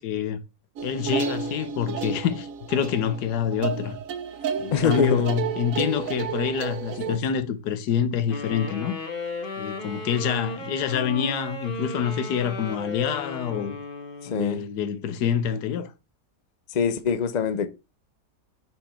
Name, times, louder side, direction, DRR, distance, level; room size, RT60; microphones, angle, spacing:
voice 1, 0.0-0.4 0.8-4.0 4.6-9.0 9.6-13.8 14.2-15.9, left 8 dB, 80° left, 1.3 m, -26 dB
sound 1, 0.8-7.2, right 7 dB, 65° right, 1.0 m, -31 dB
voice 2, 4.7-5.3 7.1-7.2 14.2-14.6 16.7-17.7, left 6 dB, 55° left, 0.4 m, -24 dB
sound 2, 8.3-14.7, left 2 dB, 35° left, 1.3 m, -35 dB
5.4 x 4.5 x 4.3 m
omnidirectional pair, 1.7 m